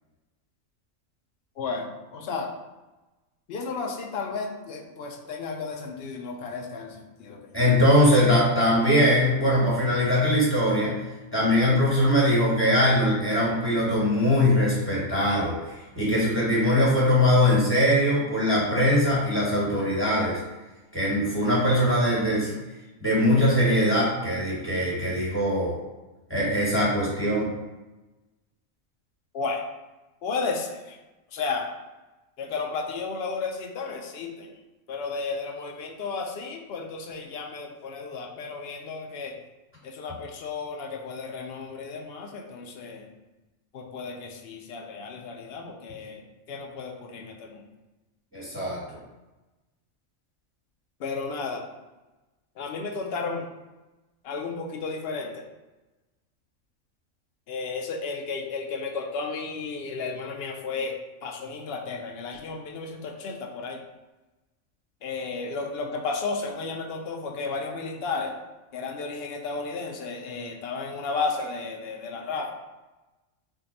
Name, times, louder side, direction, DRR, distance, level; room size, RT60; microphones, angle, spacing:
voice 1, 1.6-2.5 3.5-7.5 29.3-29.6 30.2-31.0 31.3-31.7 32.4-34.5 34.9-39.3 39.8-43.1 43.7-46.2 46.5-47.7 51.0-51.7 52.6-53.5 54.2-55.4 57.5-60.9 61.2-63.8 65.0-68.3 68.7-72.5, left 4 dB, 65° left, 2 dB, 0.7 m, -33 dB
voice 2, 7.5-10.9 11.3-20.4 20.9-22.5 23.0-25.8 26.3-27.5 48.3-48.8, left 1 dB, 10° left, -8 dB, 1.4 m, -21 dB
3.6 x 2.2 x 3.9 m, 1.1 s
omnidirectional pair, 1.4 m